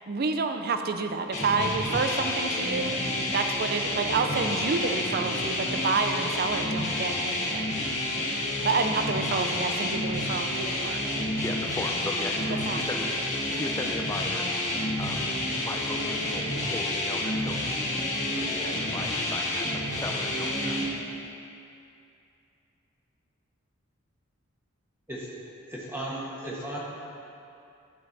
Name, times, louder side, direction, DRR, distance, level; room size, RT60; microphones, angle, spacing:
voice 1, 0.1-7.8 8.6-11.0 12.7-12.9, right 4 dB, 45° right, 7 dB, 0.5 m, -29 dB
sound 1, 1.3-20.9, left 1 dB, 35° left, 1.4 m, -29 dB
voice 2, 11.4-14.5 15.0-15.3 15.6-18.0 18.4-21.0, left 1 dB, 15° left, 2 dB, 0.6 m, -37 dB
voice 3, 25.7-26.8, right 1 dB, 10° right, -7 dB, 1.4 m, -35 dB
12.5 x 5.4 x 4.1 m, 2.6 s
head